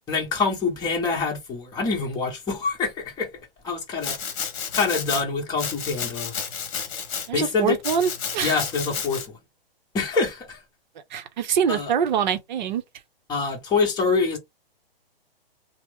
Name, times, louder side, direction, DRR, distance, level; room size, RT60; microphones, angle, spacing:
voice 1, 0.1-3.3 3.6-4.2 4.7-6.3 7.3-7.8 8.4-9.2 9.9-10.6 11.7-11.9 13.3-14.4, left 4 dB, 15° left, 1.0 m, -25 dB
Domestic sounds home sounds, 4.0-5.2 5.6-7.3 7.8-9.3, left 7 dB, 35° left, 1.2 m, -31 dB
voice 2, 7.3-8.6 11.1-12.8, right 8 dB, 50° right, 0.7 m, -24 dB
2.9 x 2.0 x 3.4 m
hypercardioid pair, 135°, 30 cm